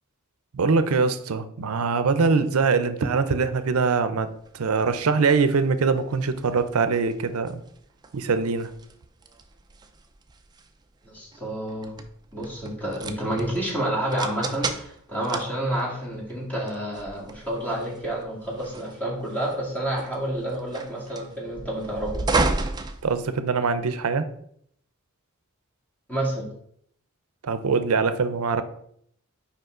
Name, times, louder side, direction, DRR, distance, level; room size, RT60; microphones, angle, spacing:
voice 1, 0.5-4.3 4.5-7.6 8.1-8.7 23.0-24.3 27.4-28.6, right 4 dB, 85° right, 11 dB, 0.6 m, -23 dB
sound 1, 4.4-23.8, right 3 dB, 20° right, 0.4 m, -34 dB
voice 2, 11.0-12.0 12.3-22.4 26.1-26.5, right 1 dB, 10° left, -3 dB, 1.9 m, -29 dB
5.4 x 4.9 x 3.7 m, 0.68 s
head